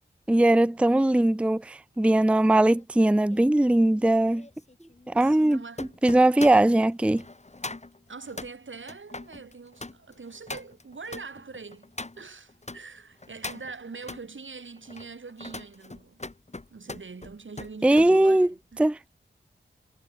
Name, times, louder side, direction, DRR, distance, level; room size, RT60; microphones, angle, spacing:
voice 1, 0.3-4.5 5.1-5.6 6.0-7.2 17.8-18.5 18.8-19.0, right 1 dB, 5° right, 0.5 m, -20 dB
sound 1, 2.2-12.8 13.2-14.2 14.8-18.1 18.5-18.8, left 2 dB, 35° left, 2.1 m, -42 dB
voice 2, 5.2-6.0 8.1-16.2 16.7-18.9, right 4 dB, 80° right, 6.5 m, -43 dB
wide cardioid pair, 55°, 20 cm